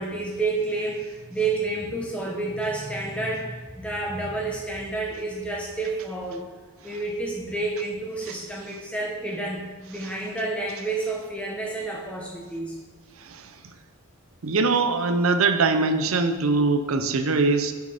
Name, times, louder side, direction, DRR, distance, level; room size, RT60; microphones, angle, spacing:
voice 1, 0.0-6.4 6.8-12.8, right 3 dB, 5° left, -2 dB, 1.3 m, -30 dB
voice 2, 13.2-13.5 14.4-17.7, right 3 dB, 75° right, 9 dB, 0.6 m, -22 dB
6.6 x 6.3 x 5.0 m, 1.3 s
head